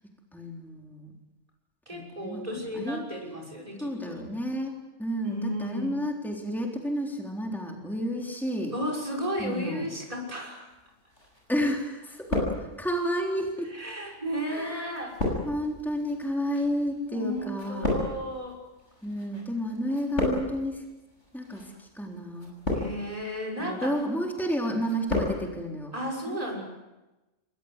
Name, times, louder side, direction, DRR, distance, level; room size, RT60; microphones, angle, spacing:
voice 1, 0.3-1.2 1.9-2.4 2.7-3.0 3.8-8.7 9.4-9.9 11.5-13.7 14.5-15.0 15.4-17.9 19.0-20.8 21.3-22.5 23.6-25.9 26.3-26.4, equal, ahead, 0 dB, 3.7 m, -31 dB
voice 2, 1.9-4.3 5.2-5.9 8.7-10.7 13.7-15.4 17.1-18.6 22.7-23.9 25.9-26.6, equal, 30° right, 0 dB, 6.4 m, -34 dB
sound 1, 11.2-11.7 12.0-13.1 13.8-19.4 19.7-20.7 21.4-21.7 22.4-23.2 23.6-24.1 24.4-25.4 25.6-25.7, left 2 dB, 75° left, 7.5 m, -32 dB
27.0 x 23.5 x 8.2 m, 1.1 s
omnidirectional pair, 1.2 m